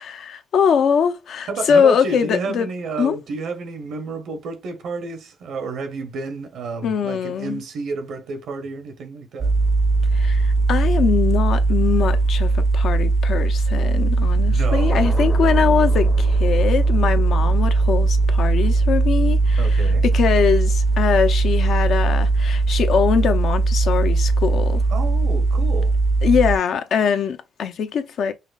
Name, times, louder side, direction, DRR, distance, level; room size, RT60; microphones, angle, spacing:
voice 1, 0.0-2.7 3.0-3.2 6.8-7.6 10.1-24.8 26.2-28.3, left 7 dB, 65° left, 0.6 m, -22 dB
voice 2, 1.5-9.5 14.5-15.5 19.6-20.0 24.9-25.9, right 4 dB, 75° right, 0.9 m, -30 dB
sound 1, 9.4-26.6, right 3 dB, 35° right, 0.5 m, -19 dB
sound 2, 14.9-21.2 21.6-21.8, left 1 dB, 15° left, 0.6 m, -37 dB
5.5 x 2.0 x 2.4 m
cardioid pair, 90°, 0 cm